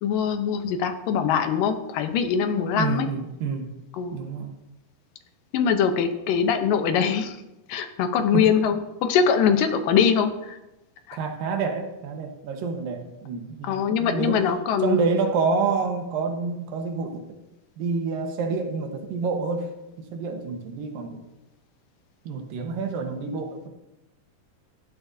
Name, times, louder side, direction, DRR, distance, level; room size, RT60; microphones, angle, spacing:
voice 1, 0.0-3.1 4.0-4.2 5.5-7.4 7.7-10.6 11.1-11.2 13.6-15.1, left 7 dB, 80° left, 8 dB, 2.6 m, -23 dB
voice 2, 2.7-3.7 4.1-4.6 8.3-8.5 11.1-14.4 14.8-17.3 17.8-19.7 20.0-21.2 22.3-23.7, right 4 dB, 85° right, 4 dB, 3.0 m, -28 dB
16.0 x 12.0 x 2.7 m, 0.97 s
omnidirectional pair, 3.9 m